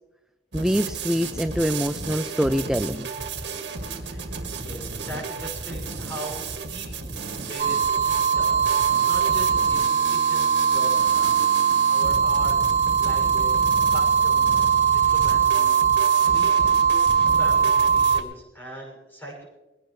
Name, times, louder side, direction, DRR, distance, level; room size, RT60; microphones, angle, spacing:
voice 1, 0.5-3.1, equal, 5° right, 9 dB, 0.4 m, -24 dB
sound 1, 0.5-18.2, right 4 dB, 85° right, 1.9 m, -33 dB
voice 2, 4.6-11.3 11.9-12.5 13.0-13.5 13.9-15.8 16.1-19.5, right 1 dB, 10° left, -3 dB, 6.4 m, -40 dB
sound 2, 7.6-18.2, right 7 dB, 40° right, 1.1 m, -20 dB
22.0 x 17.0 x 3.2 m, 1.1 s
head